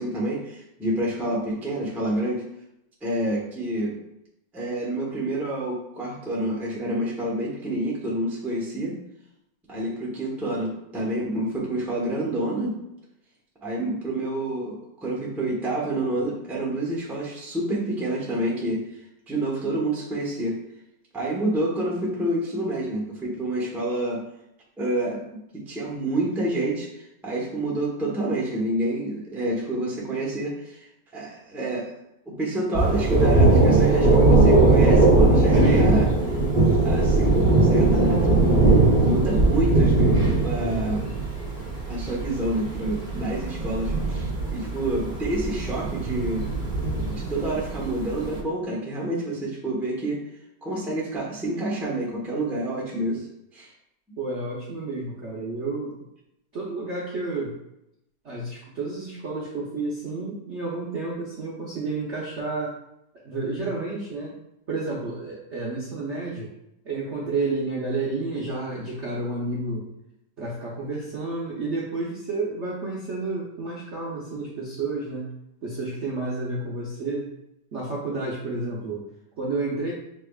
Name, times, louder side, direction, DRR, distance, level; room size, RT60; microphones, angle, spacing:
voice 1, 0.0-2.5 3.0-4.0 4.5-9.0 9.7-12.8 13.6-18.8 19.3-20.6 21.1-24.2 24.8-30.9 31.1-31.9 32.3-36.1 36.8-38.6 39.0-41.0 41.9-46.5 47.0-50.2 50.6-53.2 53.5-53.7, right 1 dB, ahead, -5 dB, 0.5 m, -28 dB
Thunder, 32.7-48.3, right 2 dB, 30° right, 1.1 m, -20 dB
voice 2, 54.2-56.0 56.5-57.6 58.2-62.8 63.2-64.3 64.7-66.5 66.8-69.9 70.4-75.3 75.6-77.3 77.7-79.0 79.4-79.9, right 3 dB, 55° right, -6 dB, 0.8 m, -30 dB
5.9 x 3.3 x 2.4 m, 0.82 s
omnidirectional pair, 2.1 m